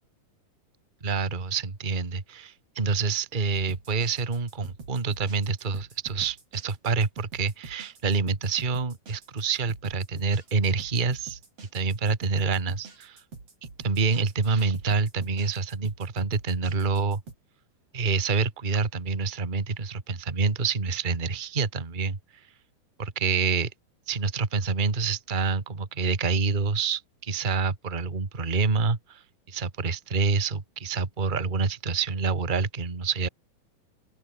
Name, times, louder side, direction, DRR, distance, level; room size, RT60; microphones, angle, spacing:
voice 1, 1.0-11.4 11.7-13.2 13.8-17.2 17.9-22.2 23.0-23.7 24.1-29.2 29.5-33.3, right 4 dB, 20° right, 1.2 m, -27 dB
sound 1, 3.5-17.3, right 4 dB, 40° right, 6.0 m, -46 dB
open air
omnidirectional pair, 4.4 m